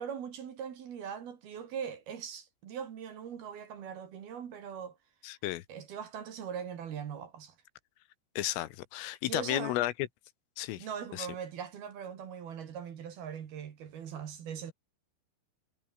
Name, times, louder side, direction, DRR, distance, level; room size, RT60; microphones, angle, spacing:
voice 1, 0.0-5.0 5.7-7.6 9.3-9.8 10.8-14.7, right 8 dB, 55° right, 3.8 m, -41 dB
voice 2, 5.2-5.6 8.4-9.9 10.6-10.9 11.1-11.3, left 15 dB, 80° left, 3.7 m, -33 dB
omnidirectional pair, 6.0 m